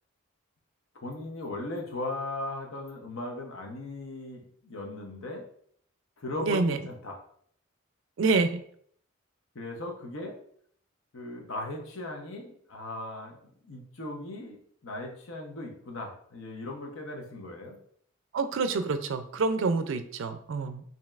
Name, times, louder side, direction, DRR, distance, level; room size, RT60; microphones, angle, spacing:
voice 1, 1.0-5.5 6.2-7.2 9.5-10.4 11.1-13.4 13.6-17.8, left 2 dB, 70° left, 2 dB, 0.8 m, -38 dB
voice 2, 6.4-6.8 8.2-8.6 18.3-20.8, right 4 dB, 65° right, 9 dB, 0.4 m, -27 dB
5.1 x 2.8 x 2.4 m, 0.63 s
head